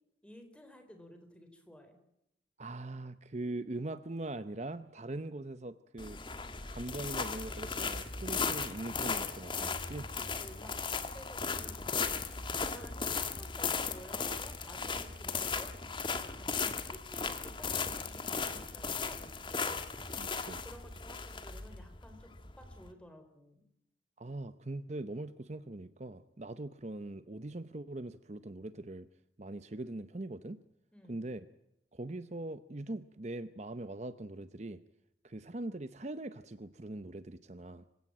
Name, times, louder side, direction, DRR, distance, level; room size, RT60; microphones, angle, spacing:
voice 1, 0.2-2.0 9.9-12.3 12.6-15.7 16.1-19.9 20.6-23.7 30.9-31.2, equal, 5° left, 6 dB, 4.1 m, -54 dB
voice 2, 2.6-6.2 6.7-10.1 20.2-20.6 24.2-29.1 29.4-30.6 31.1-31.4 31.9-34.8 35.2-37.8, right 2 dB, 40° right, 12 dB, 0.8 m, -41 dB
sound 1, 6.0-22.9, left 5 dB, 30° left, 1.6 m, -37 dB
26.0 x 17.0 x 8.7 m, 0.85 s
head